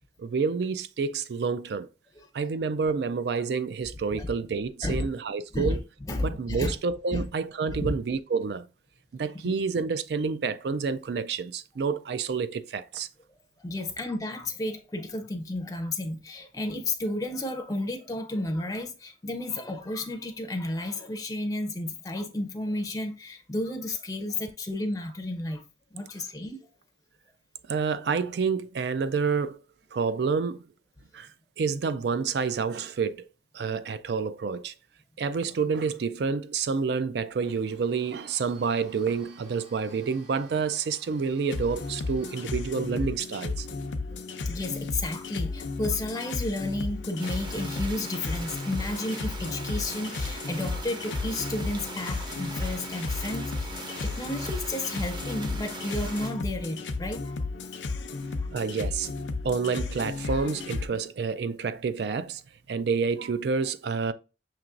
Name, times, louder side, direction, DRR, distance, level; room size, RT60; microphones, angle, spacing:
voice 1, 0.2-1.9 2.3-5.8 6.2-8.7 9.1-13.1 27.7-29.6 29.9-30.6 31.1-31.3 31.6-33.3 33.5-34.7 35.2-43.7 58.5-59.1 59.4-62.4 62.7-64.1, right 5 dB, 65° right, 0.4 m, -28 dB
voice 2, 6.1-6.7 7.1-7.3 7.7-7.9 9.4-9.6 13.6-25.6 25.9-26.6 44.5-57.4 57.9-58.5, left 2 dB, 20° left, 0.5 m, -32 dB
Domestic sounds home sounds, 37.4-43.3, right 3 dB, 90° right, 2.5 m, -54 dB
sound 1, 41.5-60.9, left 3 dB, 85° left, 0.5 m, -34 dB
sound 2, 47.2-56.3, right 2 dB, 25° right, 0.7 m, -41 dB
5.9 x 2.9 x 2.5 m
head